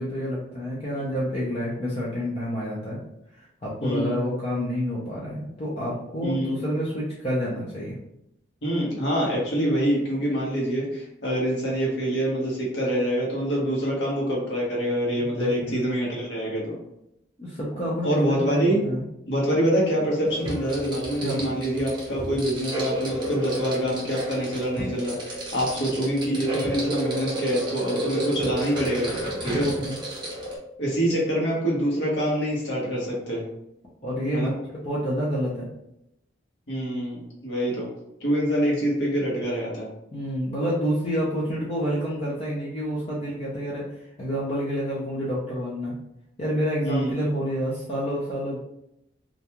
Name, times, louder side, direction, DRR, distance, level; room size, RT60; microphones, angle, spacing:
voice 1, 0.0-3.0 3.3-7.9 15.2-15.7 17.4-19.0 21.2-21.4 29.5-29.9 34.0-34.5 34.8-35.7 40.1-43.8 44.2-46.0 46.4-48.6, equal, 30° left, -6 dB, 0.5 m, -28 dB
voice 2, 3.8-4.2 6.2-6.6 8.6-16.8 18.0-18.8 19.3-29.7 30.8-33.5 34.3-34.5 36.7-37.9 38.2-39.9 46.8-47.1, equal, 60° left, -4 dB, 1.0 m, -25 dB
sound 1, 20.2-30.6, right 1 dB, 25° right, 0.7 m, -32 dB
2.5 x 2.2 x 2.9 m, 0.81 s
head